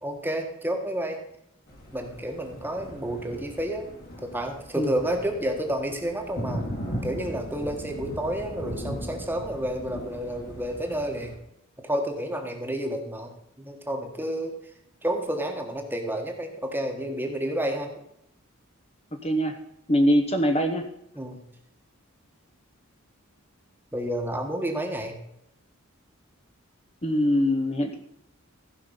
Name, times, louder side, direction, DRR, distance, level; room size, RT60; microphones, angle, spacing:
voice 1, 0.0-1.2 1.9-3.9 4.2-6.6 7.0-11.3 11.8-13.3 13.6-14.6 15.0-17.9 21.1-21.4 23.9-25.2, right 1 dB, 10° right, 3 dB, 1.4 m, -30 dB
Thunder, 1.7-11.3, equal, 45° left, 2.6 m, -38 dB
voice 2, 19.2-19.6 19.9-20.9 27.0-28.0, equal, 30° left, 4 dB, 1.0 m, -23 dB
15.5 x 5.6 x 5.5 m, 0.77 s
head